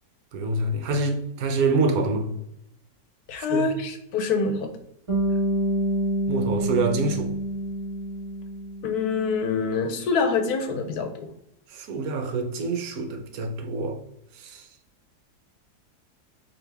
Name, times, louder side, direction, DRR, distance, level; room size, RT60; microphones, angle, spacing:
voice 1, 0.3-2.3 3.5-3.7 6.3-7.3 11.7-14.0 14.3-14.7, right 3 dB, 70° right, 1.1 m, -26 dB
voice 2, 3.3-4.7 8.8-11.3, left 4 dB, 75° left, 1.2 m, -25 dB
Bass guitar, 5.1-9.3, right 1 dB, 50° right, 1.7 m, -27 dB
4.8 x 2.8 x 3.3 m
omnidirectional pair, 1.7 m